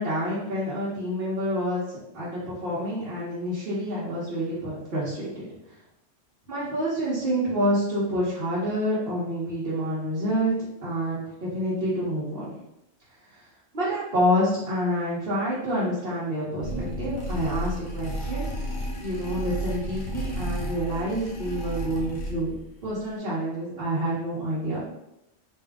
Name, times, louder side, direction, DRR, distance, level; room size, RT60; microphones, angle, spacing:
voice 1, 0.0-1.8 2.1-5.4 6.5-10.5 10.8-12.5 13.7-18.5 19.0-22.5 22.8-24.8, equal, 50° right, -9 dB, 1.1 m, -28 dB
sound 1, 16.6-22.7, right 1 dB, 75° left, 1.3 m, -32 dB
3.6 x 2.6 x 3.5 m, 0.87 s
omnidirectional pair, 1.3 m